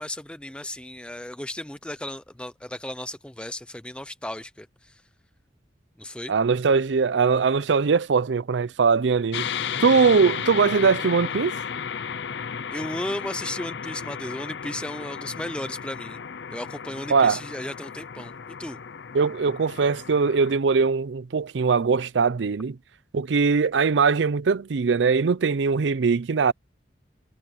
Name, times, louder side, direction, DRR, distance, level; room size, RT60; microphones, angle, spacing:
voice 1, 0.0-5.0 6.0-6.3 12.7-16.2 16.5-18.8, left 1 dB, 5° left, 0.5 m, -35 dB
voice 2, 6.3-9.5 9.8-11.5 17.1-17.4 19.1-22.8 23.1-26.5, right 5 dB, 90° right, 0.5 m, -21 dB
sound 1, 9.3-20.6, left 7 dB, 80° left, 0.6 m, -34 dB
head